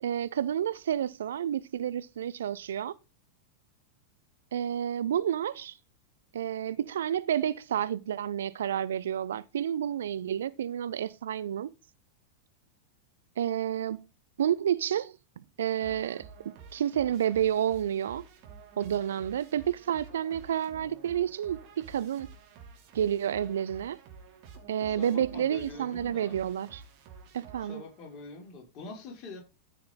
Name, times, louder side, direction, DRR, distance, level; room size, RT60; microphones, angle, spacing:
voice 1, 0.0-2.9 4.5-5.8 6.3-11.7 13.4-14.0 14.4-15.1 15.6-16.3 16.7-18.2 18.8-22.3 22.9-24.0 24.7-26.8 27.3-27.8, right 10 dB, 65° right, 0.6 m, -30 dB
sound 1, 15.8-28.2, right 5 dB, 45° right, 3.0 m, -50 dB
voice 2, 24.8-26.4 27.6-29.4, left 3 dB, 35° left, 5.4 m, -44 dB
13.5 x 6.6 x 3.9 m
figure-of-eight pair, 90°, 0 cm